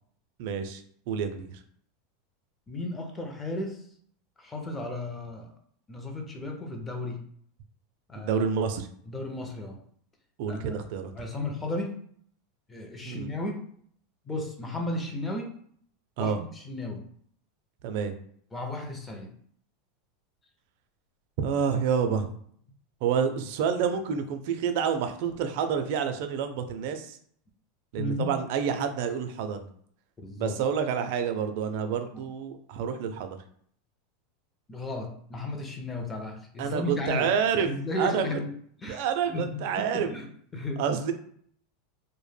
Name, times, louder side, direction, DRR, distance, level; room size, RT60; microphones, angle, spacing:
voice 1, 0.4-0.8 1.1-1.6 8.2-8.9 10.4-11.1 13.0-13.3 16.2-16.4 17.8-18.1 21.4-22.3 23.0-27.2 27.9-29.6 30.4-33.4 36.6-37.7 38.0-38.4 38.9-40.1 40.8-41.1, right 7 dB, 60° right, 7 dB, 0.4 m, -28 dB
voice 2, 2.7-3.9 4.4-5.5 5.9-7.2 8.1-8.4 9.0-9.8 10.5-10.8 11.1-12.0 12.7-13.6 14.2-15.6 16.2-17.1 18.5-19.3 28.0-28.4 30.2-30.6 32.1-32.3 34.7-37.3 37.7-38.5 38.8-39.7 39.9-40.8, left 2 dB, 15° left, 3 dB, 0.5 m, -34 dB
2.1 x 2.1 x 3.2 m, 0.62 s
supercardioid pair, 140°, 0 cm